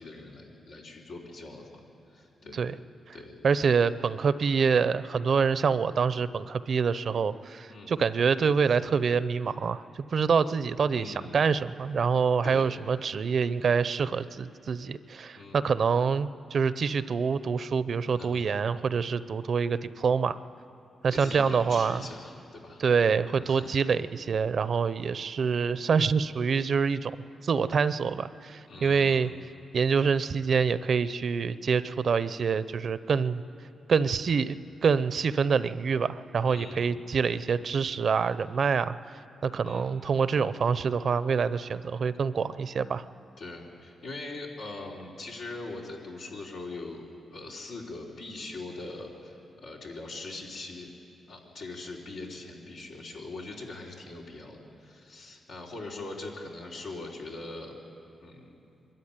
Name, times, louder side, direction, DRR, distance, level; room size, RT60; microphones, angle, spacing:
voice 1, 0.0-1.7 2.1-2.8 3.1-3.4 7.7-7.9 10.9-11.5 12.4-12.8 15.4-15.7 18.2-18.6 21.1-22.8 23.3-23.7 28.7-29.4 36.4-37.0 39.6-39.9 43.4-50.9 51.3-57.8 58.2-58.5, left 2 dB, 90° left, -3 dB, 3.5 m, -42 dB
voice 2, 3.4-20.4 21.0-22.0 22.8-29.3 29.7-33.4 33.9-34.6 34.8-38.9 39.4-43.0, right 6 dB, 60° right, 15 dB, 0.6 m, -26 dB
23.0 x 13.5 x 10.0 m, 2.9 s
cardioid pair, 70°, 0 cm